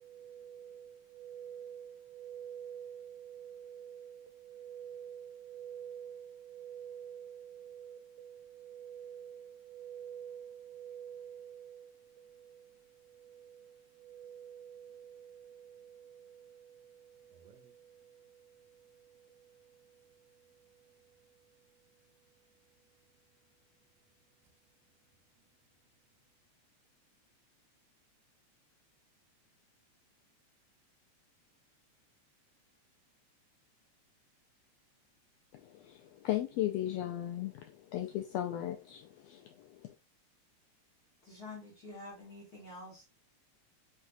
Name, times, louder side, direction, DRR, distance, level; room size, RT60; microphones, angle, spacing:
voice 1, 0.0-24.6, right 9 dB, 70° right, 1.7 m, -50 dB
voice 2, 35.5-39.9, left 13 dB, 80° left, 1.5 m, -37 dB
voice 3, 41.2-43.0, left 2 dB, 45° left, 1.4 m, -48 dB
5.7 x 3.3 x 2.6 m
omnidirectional pair, 3.4 m